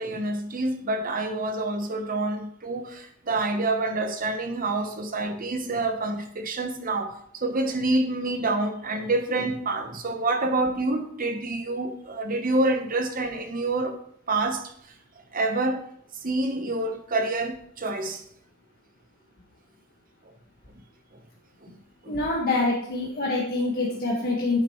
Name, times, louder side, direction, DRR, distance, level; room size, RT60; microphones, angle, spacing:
voice 1, 0.0-13.9 14.3-14.7 15.3-15.8 16.2-18.2 21.6-21.8 22.0-22.2, right 2 dB, 40° right, 1.0 m, -27 dB
voice 2, 22.1-24.6, left 2 dB, 45° left, 1.6 m, -25 dB
10.0 x 7.7 x 3.1 m
head